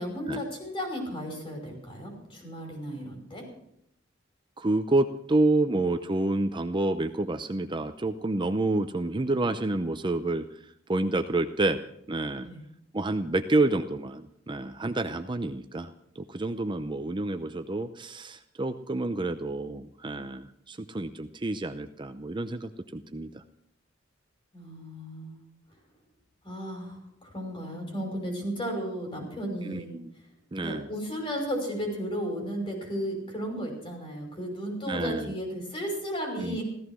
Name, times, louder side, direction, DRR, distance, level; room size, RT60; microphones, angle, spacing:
voice 1, 0.0-3.5 12.4-12.7 24.5-25.4 26.4-29.9 30.6-36.6, equal, 30° left, 2 dB, 5.5 m, -34 dB
voice 2, 4.6-10.4 10.9-11.8 12.1-12.5 12.9-23.4 29.7-30.1 30.5-30.9 34.9-35.3 36.4-36.6, right 2 dB, 25° right, 9 dB, 0.6 m, -28 dB
15.5 x 14.5 x 6.2 m, 0.75 s
head